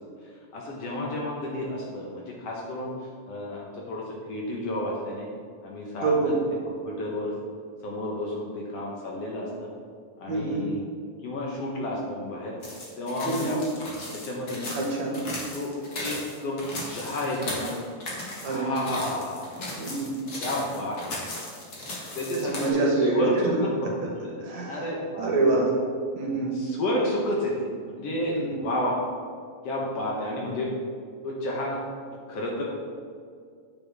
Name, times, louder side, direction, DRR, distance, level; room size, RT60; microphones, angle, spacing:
voice 1, 0.5-2.9 3.3-5.3 5.6-6.3 6.7-7.3 7.8-9.7 10.2-10.8 11.2-12.5 13.0-13.6 14.1-14.7 15.5-15.7 16.0-17.7 18.4-19.5 20.4-21.1 22.1-25.6 26.6-29.0 29.6-30.7 31.2-31.8 32.3-32.6, left 1 dB, 60° left, -3 dB, 1.9 m, -31 dB
voice 2, 6.0-6.4 10.3-10.7 13.2-13.6 14.7-15.2 18.4-18.7 19.8-20.1 22.3-23.5 24.4-24.8 25.2-25.7 26.2-26.6 28.3-28.6, right 3 dB, 65° right, -1 dB, 2.5 m, -26 dB
sound 1, 12.6-22.7, left 1 dB, 45° left, 1.4 m, -37 dB
9.7 x 7.3 x 3.5 m, 2.1 s
omnidirectional pair, 3.6 m